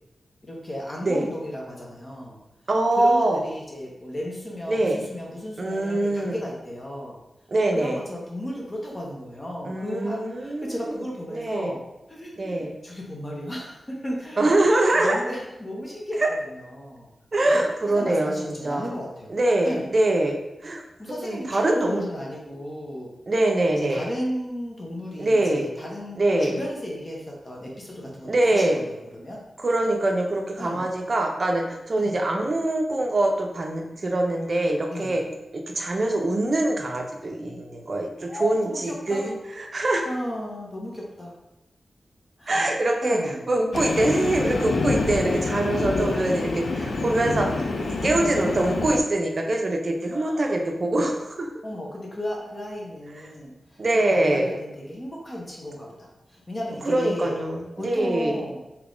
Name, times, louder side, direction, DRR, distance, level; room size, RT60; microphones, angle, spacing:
voice 1, 0.4-2.4 3.0-7.2 7.7-11.8 12.1-14.5 14.9-16.2 16.5-17.1 17.5-17.6 17.9-19.4 19.6-19.9 21.0-23.1 23.8-29.4 30.6-30.9 32.0-32.1 34.9-35.2 38.2-39.3 40.0-41.3 42.4-42.5 43.0-43.5 45.7-45.9 48.0-48.6 50.1-50.5 51.6-57.3 57.8-58.6, equal, 25° left, -3 dB, 0.7 m, -34 dB
voice 2, 2.7-3.4 4.7-5.0 5.6-6.4 7.5-7.9 9.6-10.9 11.3-11.7 12.4-12.7 14.4-15.2 16.2-16.3 17.3-18.9 19.3-20.4 20.6-20.8 21.2-22.0 23.3-24.1 25.2-25.7 26.2-26.6 28.3-28.8 29.6-35.2 35.5-40.0 42.5-43.2 43.5-47.7 48.0-51.5 53.8-54.5 56.9-58.4, right 1 dB, 45° right, 2 dB, 0.5 m, -23 dB
Train, 43.7-49.0, left 3 dB, 80° left, 0.4 m, -27 dB
3.3 x 2.9 x 2.5 m, 0.93 s
wide cardioid pair, 100°, 0 cm